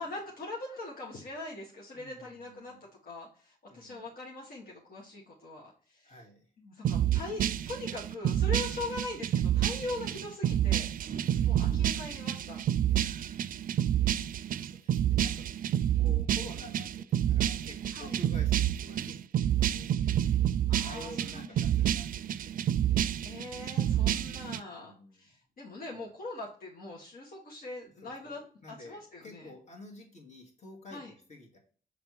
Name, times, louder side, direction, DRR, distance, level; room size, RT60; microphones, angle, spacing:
voice 1, 0.0-2.7 3.0-6.1 6.6-10.9 11.5-12.6 17.9-18.2 20.7-21.5 23.2-28.5 28.8-29.5 30.9-31.1, left 2 dB, 70° left, -2 dB, 1.6 m, -41 dB
voice 2, 1.9-2.8 3.7-4.0 6.0-6.5 8.7-9.0 11.0-11.9 12.9-13.5 14.6-15.5 16.0-23.1 24.7-25.4 25.9-26.1 28.0-31.0 31.3-31.6, left 2 dB, 45° left, 2 dB, 2.2 m, -51 dB
sound 1, 6.8-24.6, right 11 dB, 65° right, 0.4 m, -29 dB
7.0 x 3.5 x 4.6 m, 0.43 s
cardioid pair, 85°, 16 cm